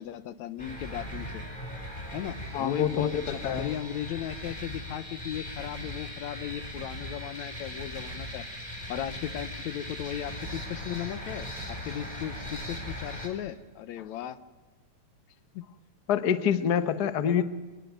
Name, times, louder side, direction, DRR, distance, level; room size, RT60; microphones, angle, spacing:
voice 1, 0.0-1.4 2.1-8.5 8.9-14.4 15.5-15.7 17.3-17.4, left 11 dB, 75° left, 14 dB, 2.2 m, -36 dB
sound 1, 0.6-13.3, equal, 15° left, 4.8 m, -39 dB
voice 2, 2.5-3.7 16.1-17.4, left 8 dB, 55° left, 12 dB, 1.1 m, -26 dB
24.0 x 20.0 x 9.3 m, 1.3 s
omnidirectional pair, 3.4 m